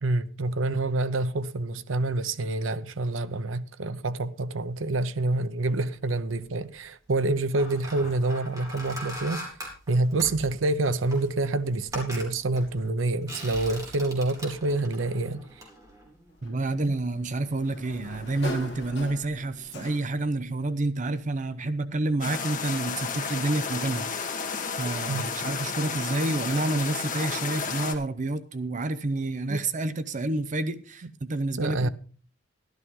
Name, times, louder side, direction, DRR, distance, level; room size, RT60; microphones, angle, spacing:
voice 1, 0.0-9.4 9.9-15.5 16.8-17.0 25.1-25.2 29.5-29.6 31.6-31.9, right 2 dB, 90° right, 0.7 m, -27 dB
sound 1, 6.1-6.6 7.2-16.7 17.0-17.2, equal, 20° right, 3.9 m, -41 dB
Sliding door, 16.4-20.4, equal, 65° left, 1.8 m, -41 dB
voice 2, 16.4-24.1 24.8-31.9, right 2 dB, 40° right, 0.6 m, -29 dB
sound 2, 22.2-27.9, left 5 dB, 45° left, 1.8 m, -32 dB
12.5 x 12.5 x 3.7 m
head